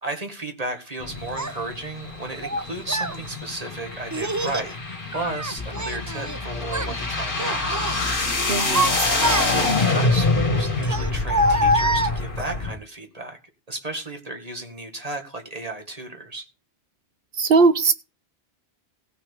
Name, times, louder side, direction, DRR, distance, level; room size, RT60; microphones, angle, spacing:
voice 1, 0.0-4.8 5.1-7.8 9.4-13.4 13.7-16.5, right 2 dB, 40° right, 5 dB, 2.0 m, -33 dB
sound 1, 1.0-12.7, left 3 dB, 55° left, 2.2 m, -26 dB
Child speech kid speaking, 1.4-1.5 2.4-3.2 4.1-4.7 5.1-6.4 6.6-7.0 7.4-8.0 8.5-9.8 10.8-12.6, equal, 20° right, 0.6 m, -25 dB
sound 2, 5.6-10.6, left 3 dB, 5° left, 2.0 m, -37 dB
voice 2, 8.5-8.9 17.4-17.9, right 4 dB, 65° right, 11 dB, 1.3 m, -18 dB
16.0 x 5.9 x 6.7 m, 0.32 s
omnidirectional pair, 1.0 m